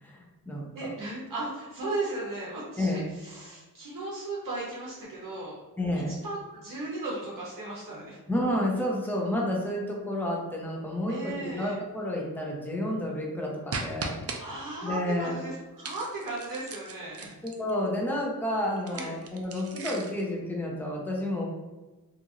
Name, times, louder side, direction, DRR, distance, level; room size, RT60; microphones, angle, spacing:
voice 1, 0.0-0.9 2.8-3.0 5.8-6.1 8.3-14.2 14.8-15.4 17.4-21.5, left 1 dB, 5° left, -3 dB, 0.7 m, -30 dB
voice 2, 0.7-5.6 6.1-8.2 11.1-11.8 14.4-17.3 18.9-19.2, right 2 dB, 60° right, -5 dB, 0.8 m, -36 dB
sound 1, 13.7-14.4 15.8-17.7 18.8-20.2, right 3 dB, 40° right, 0.4 m, -37 dB
2.9 x 2.6 x 2.4 m, 1.2 s
wide cardioid pair, 75°, 38 cm